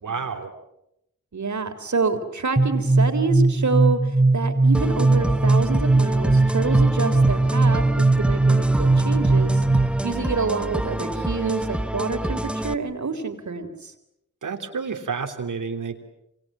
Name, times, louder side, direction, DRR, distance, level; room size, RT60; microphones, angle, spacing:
voice 1, 0.0-0.5 14.4-16.0, right 5 dB, 90° right, 5 dB, 3.3 m, -30 dB
voice 2, 1.3-9.6 10.0-13.9, right 4 dB, 70° right, 7 dB, 3.8 m, -27 dB
sound 1, 2.6-10.1, right 2 dB, 25° right, 3.2 m, -19 dB
sound 2, 4.7-12.7, right 1 dB, 5° right, 1.2 m, -28 dB
27.5 x 27.0 x 7.5 m, 0.84 s
cardioid pair, 55°, 30 cm